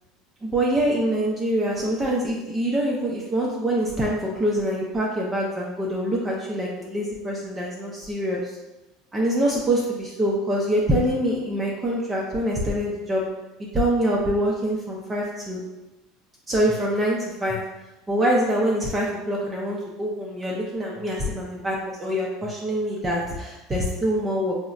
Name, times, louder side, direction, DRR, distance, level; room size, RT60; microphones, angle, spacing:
voice 1, 0.4-8.6 9.1-13.2 13.7-15.6 16.5-17.6 18.1-24.6, equal, 15° right, -4 dB, 0.4 m, -25 dB
3.9 x 2.0 x 2.4 m, 1.0 s
supercardioid pair, 130°, 0 cm